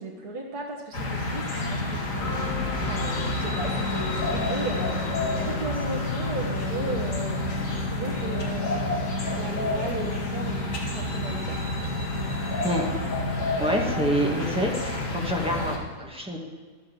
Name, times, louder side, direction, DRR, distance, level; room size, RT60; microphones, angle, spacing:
voice 1, 0.0-2.5 2.9-5.0 5.4-8.8 9.4-11.6 13.4-13.6, right 2 dB, 75° right, -2 dB, 1.9 m, -35 dB
sound 1, 0.9-15.8, left 2 dB, 55° left, 2.4 m, -29 dB
sound 2, 2.2-14.0, left 4 dB, 80° left, 1.7 m, -36 dB
voice 2, 13.6-16.4, equal, 5° right, -1 dB, 1.9 m, -27 dB
12.5 x 7.9 x 7.4 m, 1.5 s
omnidirectional pair, 1.7 m